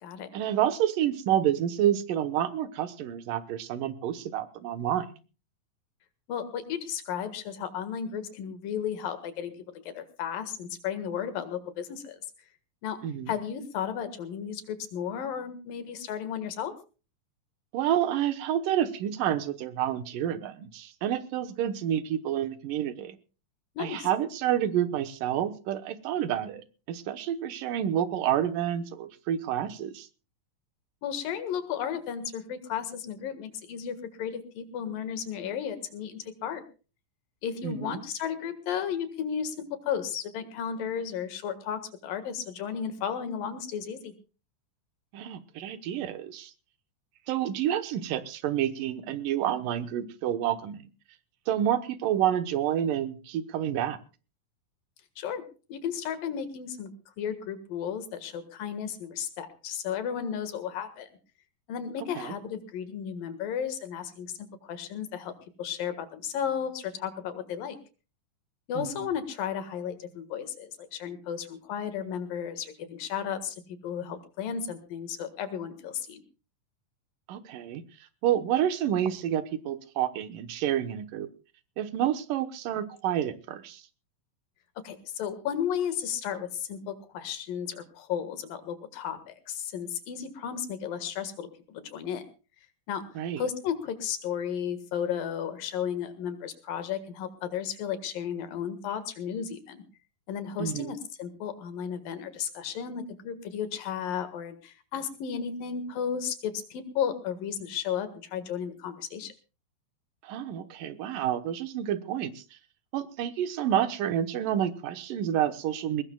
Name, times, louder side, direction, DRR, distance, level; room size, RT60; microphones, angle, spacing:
voice 1, 0.3-5.2 13.0-13.3 17.7-23.2 23.8-30.1 37.6-38.0 45.1-46.5 47.3-50.8 51.5-54.0 62.2-62.3 68.8-69.1 77.3-77.8 78.2-81.3 81.8-83.8 93.2-93.4 100.6-100.9 110.2-112.4 112.9-116.0, right 10 dB, 80° right, 10 dB, 2.7 m, -29 dB
voice 2, 6.3-9.5 9.8-12.2 12.8-13.0 13.3-16.7 23.8-24.1 31.0-36.6 37.4-44.1 55.2-55.4 55.7-56.9 57.2-61.1 61.7-65.3 65.6-67.8 68.7-76.2 84.8-92.2 92.9-93.0 93.4-99.8 100.3-109.3, left 8 dB, 85° left, 10 dB, 3.4 m, -34 dB
21.5 x 19.5 x 2.3 m, 0.35 s
omnidirectional pair, 3.9 m